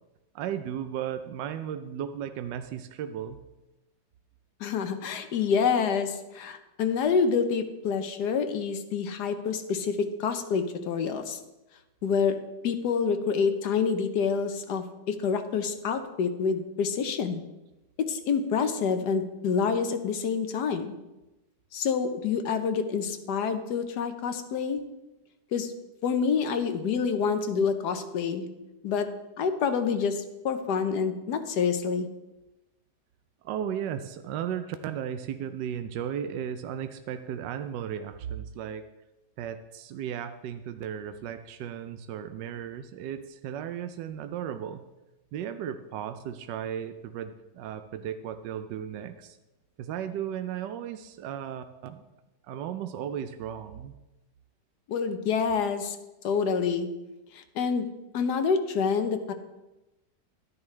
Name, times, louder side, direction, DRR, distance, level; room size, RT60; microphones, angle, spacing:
voice 1, 0.3-3.4 33.4-38.9 39.4-44.8 45.3-49.4 49.8-52.0 52.5-53.9, right 9 dB, 80° right, 9 dB, 1.2 m, -35 dB
voice 2, 4.6-11.4 12.0-12.4 12.6-17.4 18.0-20.9 21.7-24.8 25.5-25.7 26.0-28.5 28.8-29.1 29.4-32.1 54.9-56.0 56.2-56.9 57.3-57.9 58.1-59.3, left 6 dB, 70° left, 8 dB, 1.3 m, -27 dB
12.0 x 9.5 x 3.2 m, 0.99 s
omnidirectional pair, 1.9 m